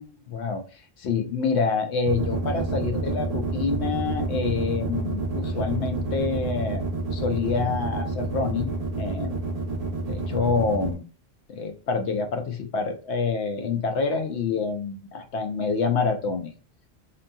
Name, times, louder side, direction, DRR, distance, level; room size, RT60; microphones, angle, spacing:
voice 1, 0.0-6.8 7.1-8.7 9.0-9.4 10.1-11.0 11.5-16.5, left 5 dB, 75° left, 5 dB, 0.9 m, -27 dB
sound 1, 2.1-11.0, right 3 dB, 45° right, 0.6 m, -29 dB
2.7 x 2.6 x 2.2 m, 0.35 s
omnidirectional pair, 1.2 m